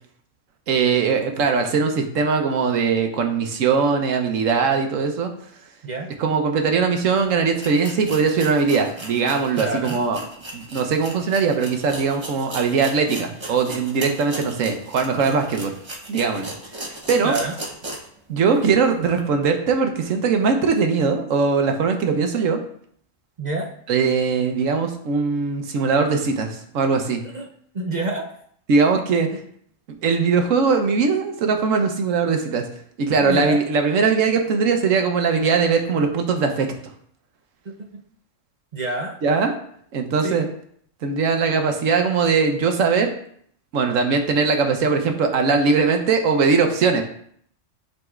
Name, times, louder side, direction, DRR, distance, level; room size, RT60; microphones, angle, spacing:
voice 1, 0.7-5.3 6.2-10.2 10.5-15.7 16.1-16.5 17.1-17.3 18.3-22.6 23.9-27.2 28.7-29.4 30.0-32.7 33.0-36.7 39.2-39.5 39.9-40.4 41.0-43.1 43.7-47.0, right 5 dB, 80° right, 5 dB, 1.2 m, -20 dB
sound 1, 7.0-7.1 7.6-18.2 18.5-18.6 19.1-19.2, right 1 dB, 25° right, 0.9 m, -36 dB
voice 2, 9.5-10.0 17.2-17.5 23.4-23.7 27.2-27.5 27.7-28.3 33.1-33.6 37.7-38.0 38.7-39.2 40.2-40.4, right 2 dB, 50° right, 1 dB, 0.6 m, -27 dB
11.0 x 4.1 x 2.4 m, 0.64 s
omnidirectional pair, 1.3 m